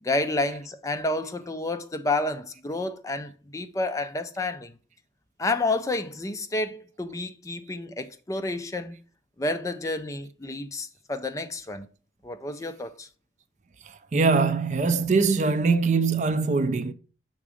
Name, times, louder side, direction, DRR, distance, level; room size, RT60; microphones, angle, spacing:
voice 1, 0.0-4.7 5.4-9.0 9.4-11.9 12.2-13.1, left 2 dB, 20° left, 0.4 m, -30 dB
voice 2, 14.1-16.9, right 4 dB, 40° right, 0.4 m, -22 dB
6.0 x 3.7 x 4.9 m
head